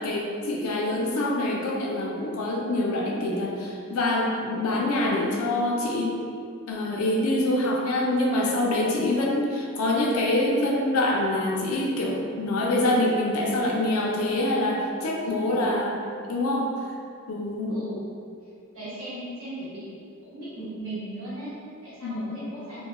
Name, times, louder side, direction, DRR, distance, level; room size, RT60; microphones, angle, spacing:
voice 1, 0.0-6.2 6.7-15.9 16.3-16.7 17.3-17.8 22.0-22.4, left 1 dB, 85° left, -1 dB, 0.4 m, -25 dB
voice 2, 6.7-7.1 15.2-16.0 17.7-18.0 18.7-19.9 20.2-22.8, right 1 dB, 80° right, -11 dB, 0.9 m, -38 dB
2.2 x 2.1 x 2.9 m, 2.4 s
head